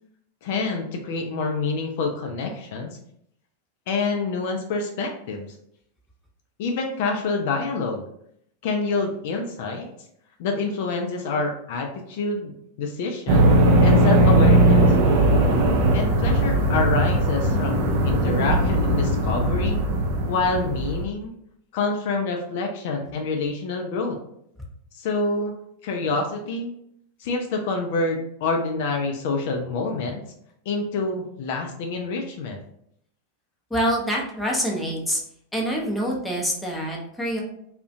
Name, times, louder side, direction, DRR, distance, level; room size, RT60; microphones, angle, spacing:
voice 1, 0.4-2.9 3.9-5.5 6.6-8.0 8.6-9.9 10.4-12.5 12.8-13.5 13.8-14.8 15.9-17.8 18.0-19.8 20.3-21.3 21.7-24.2 24.9-25.5 25.8-26.7 27.2-30.2 30.7-32.6, left 3 dB, 50° left, 3 dB, 0.3 m, -27 dB
sound 1, 13.3-21.0, right 1 dB, 50° right, 0.4 m, -19 dB
voice 2, 33.7-35.2 35.5-37.4, equal, 5° left, -2 dB, 0.6 m, -26 dB
2.3 x 2.1 x 2.5 m, 0.72 s
figure-of-eight pair, 90°, 0 cm